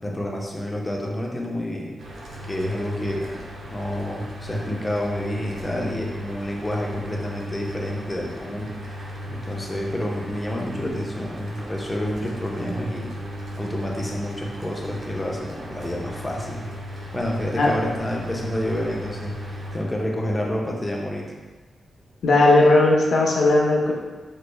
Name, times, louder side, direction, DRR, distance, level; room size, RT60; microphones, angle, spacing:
voice 1, 0.0-2.0 2.4-8.7 9.3-13.1 13.6-16.7 17.1-21.3, left 1 dB, 15° left, -2 dB, 0.4 m, -29 dB
Mechanical fan, 2.0-19.8, equal, 85° right, 0.5 m, -36 dB
voice 2, 22.2-23.9, left 2 dB, 70° left, -2 dB, 0.5 m, -17 dB
3.1 x 3.1 x 2.2 m, 1.3 s
wide cardioid pair, 160°, 0 cm